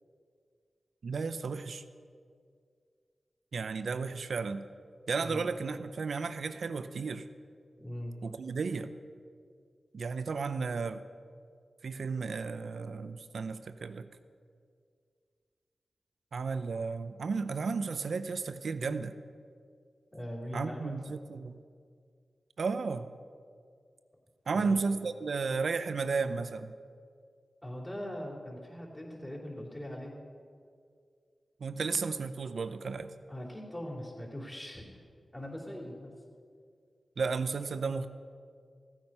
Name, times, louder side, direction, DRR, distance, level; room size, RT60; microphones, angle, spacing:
voice 1, 1.0-1.8 3.5-4.6 5.1-7.3 8.2-8.9 9.9-11.0 11.8-14.1 16.3-19.1 20.5-21.6 22.6-23.0 24.5-26.7 31.6-33.1 37.2-38.1, right 4 dB, 80° right, 11 dB, 0.6 m, -33 dB
voice 2, 7.8-8.1 20.1-21.0 24.5-24.8 27.6-30.1 33.3-34.9 35.3-36.1, equal, 25° left, -3 dB, 3.0 m, -41 dB
15.0 x 8.9 x 5.4 m, 2.2 s
cardioid pair, 50°, 0 cm